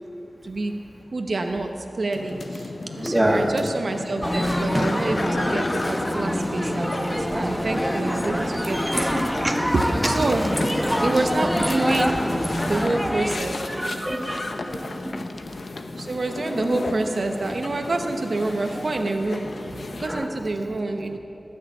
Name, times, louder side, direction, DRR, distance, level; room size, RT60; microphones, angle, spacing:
voice 1, 0.4-0.7 1.1-9.4 9.7-10.4 10.9-13.6 16.0-21.2, right 2 dB, 65° right, 4 dB, 0.9 m, -27 dB
sound 1, 2.1-20.1, left 3 dB, 70° left, 0.8 m, -34 dB
voice 2, 3.0-3.5 9.4-9.5 13.7-14.4 14.7-15.1 16.6-16.7 20.1-20.3, right 1 dB, 10° right, 2 dB, 1.5 m, -25 dB
sound 2, 4.2-13.3, equal, 10° left, 1.1 m, -25 dB
19.5 x 6.5 x 8.4 m, 2.9 s
wide cardioid pair, 90°, 0 cm